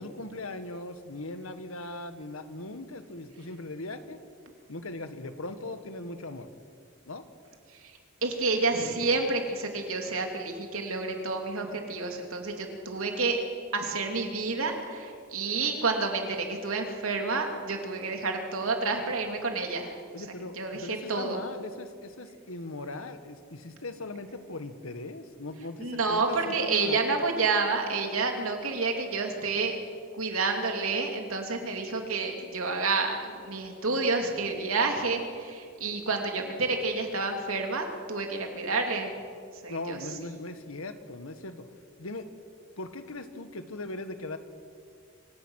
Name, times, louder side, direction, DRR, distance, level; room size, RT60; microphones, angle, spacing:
voice 1, 0.0-4.2 4.7-6.5 7.0-7.2 20.1-27.1 39.7-41.6 42.0-42.3 42.8-44.4, left 2 dB, 85° left, 9 dB, 1.7 m, -39 dB
voice 2, 7.7-13.4 13.7-20.0 20.5-21.4 25.8-29.8 30.1-39.1 39.5-40.0, right 3 dB, 85° right, 3 dB, 3.0 m, -29 dB
26.5 x 17.5 x 6.5 m, 2.2 s
head